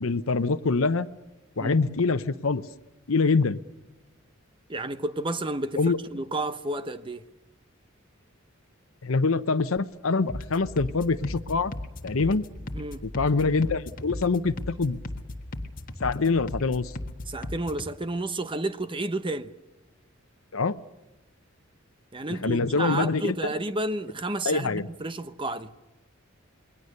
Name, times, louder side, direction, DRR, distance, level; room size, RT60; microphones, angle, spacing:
voice 1, 0.0-1.1 1.6-2.6 3.1-3.6 5.8-6.0 9.0-11.7 12.0-12.4 13.0-15.0 16.0-16.9 20.5-20.8 22.4-23.3 24.4-24.9, left 4 dB, 80° left, 0.8 m, -24 dB
voice 2, 4.7-5.8 6.1-7.3 12.7-13.0 17.3-19.5 22.1-25.7, right 2 dB, 25° right, 0.9 m, -31 dB
sound 1, 10.3-17.9, left 1 dB, 40° left, 1.6 m, -37 dB
28.0 x 21.5 x 6.6 m
head